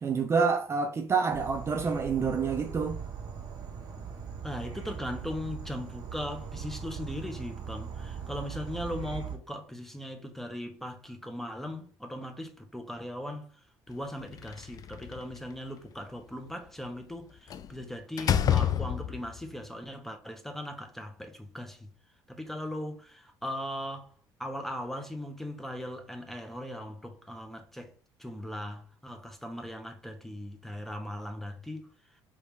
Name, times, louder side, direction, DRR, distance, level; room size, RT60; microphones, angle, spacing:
voice 1, 0.0-3.0, right 5 dB, 30° right, 0.5 m, -27 dB
Insect / Frog, 1.3-9.4, right 7 dB, 50° right, 1.3 m, -40 dB
voice 2, 4.4-21.9 22.3-24.1 24.4-27.9 28.2-31.9, left 1 dB, 5° left, 0.9 m, -39 dB
Slam, 14.3-15.4 17.5-17.7 18.2-19.4, left 9 dB, 45° left, 0.4 m, -28 dB
4.8 x 3.2 x 3.2 m
cardioid pair, 110°, 9 cm